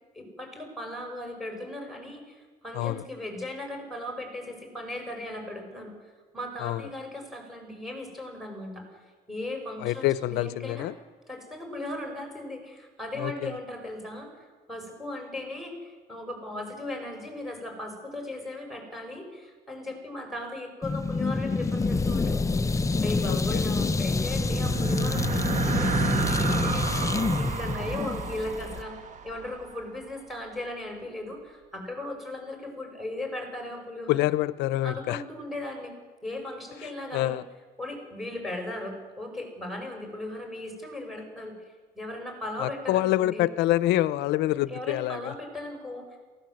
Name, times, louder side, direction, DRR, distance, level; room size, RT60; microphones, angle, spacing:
voice 1, 0.1-5.9 6.3-9.0 9.3-10.9 11.3-22.6 23.0-29.0 29.2-34.3 34.8-35.9 36.2-37.4 37.8-41.6 42.0-43.5 44.5-46.2, left 1 dB, ahead, 2 dB, 6.8 m, -37 dB
voice 2, 9.8-11.0 13.2-13.5 23.3-23.6 34.1-35.2 37.1-37.4 42.6-45.3, left 15 dB, 80° left, 17 dB, 0.8 m, -26 dB
sound 1, 20.8-28.8, left 3 dB, 20° left, 0.8 m, -27 dB
sound 2, 24.2-29.8, right 5 dB, 45° right, 1.5 m, -31 dB
23.0 x 17.5 x 7.9 m, 1.4 s
cardioid pair, 120°, 17 cm